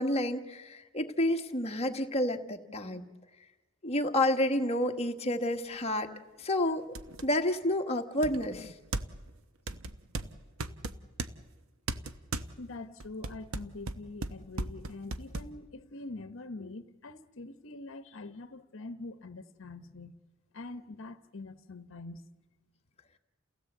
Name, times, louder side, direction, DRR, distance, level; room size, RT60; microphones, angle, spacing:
voice 1, 0.0-3.1 3.8-6.1 6.4-6.9 7.2-8.7, left 1 dB, 30° left, 1.4 m, -30 dB
sound 1, 5.8-5.9 6.4-6.5 7.0-7.3 8.2-9.3 9.7-11.3 11.9-12.5 13.0-15.5, right 2 dB, 85° right, 0.9 m, -37 dB
voice 2, 12.6-20.2 20.5-22.2, left 2 dB, 65° left, 1.0 m, -44 dB
29.0 x 16.5 x 8.0 m
head